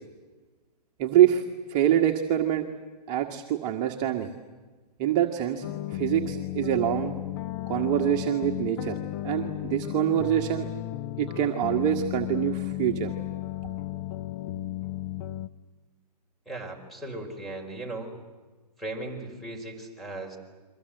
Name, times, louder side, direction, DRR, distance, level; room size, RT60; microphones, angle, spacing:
voice 1, 1.0-1.4 1.7-2.6 3.1-4.3 5.0-5.6 5.9-7.1 7.7-9.0 9.2-10.7 11.2-13.1, right 11 dB, 35° right, 2 dB, 1.6 m, -25 dB
sound 1, 5.6-15.5, left 15 dB, 35° left, 0.9 m, -34 dB
voice 2, 16.4-18.2 18.8-20.4, right 2 dB, ahead, 3 dB, 4.7 m, -37 dB
30.0 x 23.5 x 7.9 m, 1.3 s
hypercardioid pair, 130°, 21 cm